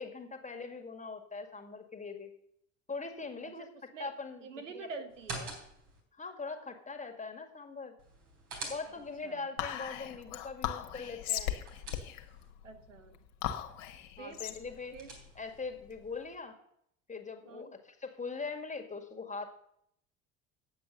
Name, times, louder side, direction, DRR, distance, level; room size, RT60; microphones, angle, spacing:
voice 1, 0.0-2.3 2.9-3.7 4.0-4.5 4.7-4.9 6.2-7.9 8.7-11.6 14.2-15.0 15.4-16.6 17.1-19.5, left 4 dB, 20° left, 5 dB, 2.0 m, -41 dB
voice 2, 3.4-4.1 4.4-5.6 8.8-9.5 12.6-13.2 14.2-14.4 14.9-15.2 17.4-17.8, right 5 dB, 90° right, 9 dB, 0.8 m, -47 dB
sound 1, 5.1-6.0 8.0-9.3 11.3-12.5 14.5-15.6, right 3 dB, 55° right, 3.8 m, -46 dB
Whispering, 9.6-16.2, left 11 dB, 65° left, 1.4 m, -38 dB
9.1 x 7.8 x 6.7 m, 0.72 s
hypercardioid pair, 60°, 37 cm